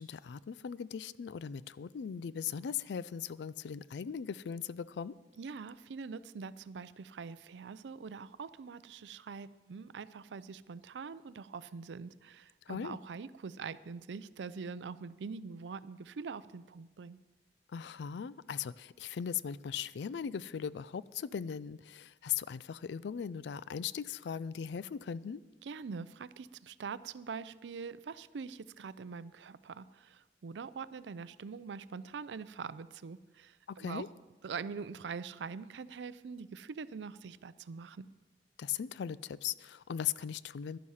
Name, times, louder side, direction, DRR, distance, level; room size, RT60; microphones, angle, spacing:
voice 1, 0.0-5.1 12.7-13.0 17.7-25.4 33.7-34.1 38.6-40.8, left 8 dB, 75° left, 19 dB, 0.4 m, -39 dB
voice 2, 5.4-17.2 25.6-34.1 34.4-38.1, right 5 dB, 90° right, 16 dB, 0.4 m, -44 dB
11.5 x 11.0 x 5.6 m, 1.2 s
head